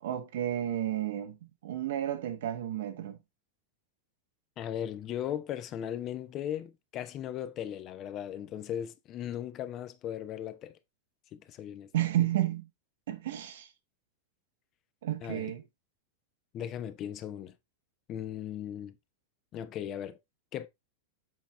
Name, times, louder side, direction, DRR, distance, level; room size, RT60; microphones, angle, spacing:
voice 1, 0.0-3.2 11.9-12.7 13.1-13.7 15.0-15.6, right 12 dB, 60° right, 1.3 m, -32 dB
voice 2, 4.6-10.7 11.3-11.9 15.2-15.5 16.5-17.5 18.1-18.9 19.5-20.2 20.5-20.7, left 10 dB, 35° left, 0.8 m, -37 dB
7.8 x 5.7 x 3.2 m
figure-of-eight pair, 90°, 0 cm